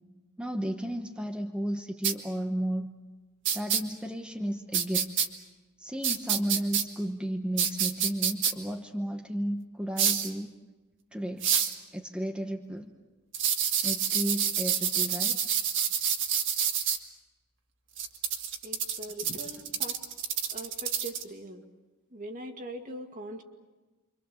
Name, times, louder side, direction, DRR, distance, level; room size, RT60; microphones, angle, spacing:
voice 1, 0.4-2.9 3.5-5.2 5.8-10.5 11.1-11.5 11.9-12.9 13.8-15.4, equal, 5° right, 3 dB, 1.0 m, -33 dB
sound 1, 2.0-2.1 3.4-3.8 4.7-5.3 6.0-6.8 7.6-8.5 10.0-10.3 11.4-11.7 13.3-17.0 18.0-21.2, right 8 dB, 55° right, 1.9 m, -27 dB
voice 2, 18.6-20.0 20.5-21.6 22.1-23.4, right 1 dB, 35° right, 4 dB, 2.2 m, -41 dB
29.5 x 24.5 x 7.0 m, 1.2 s
head